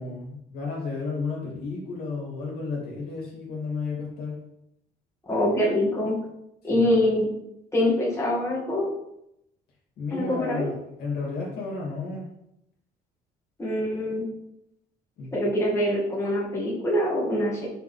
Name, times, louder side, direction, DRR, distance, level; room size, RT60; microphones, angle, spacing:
voice 1, 0.0-4.4 6.6-7.0 10.0-12.3 15.2-15.3, left 4 dB, 65° left, -3 dB, 2.4 m, -33 dB
voice 2, 5.3-6.1 6.6-7.3 7.7-8.9 10.1-10.6 13.6-14.2 15.3-17.7, left 1 dB, 15° left, -6 dB, 2.0 m, -24 dB
6.5 x 4.4 x 3.4 m, 0.81 s
cardioid pair, 110°, 17 cm